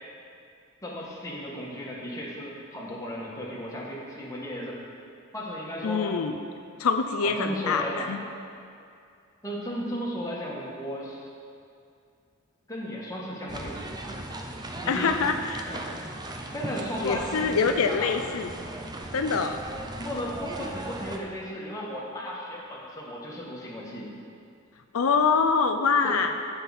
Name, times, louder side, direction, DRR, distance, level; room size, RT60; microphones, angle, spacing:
voice 1, 0.8-4.8 5.3-6.2 7.2-8.1 9.4-11.3 12.7-14.2 14.8-15.1 15.7-15.8 16.5-18.4 20.0-24.1 26.0-26.2, equal, 15° left, -5 dB, 1.7 m, -35 dB
voice 2, 5.8-6.3 6.8-8.2 14.9-15.7 17.0-18.5 19.1-19.6 24.9-26.3, left 5 dB, 85° left, 6 dB, 0.5 m, -25 dB
sound 1, 13.5-21.2, right 1 dB, 20° right, 0.6 m, -38 dB
14.5 x 5.8 x 4.2 m, 2.4 s
head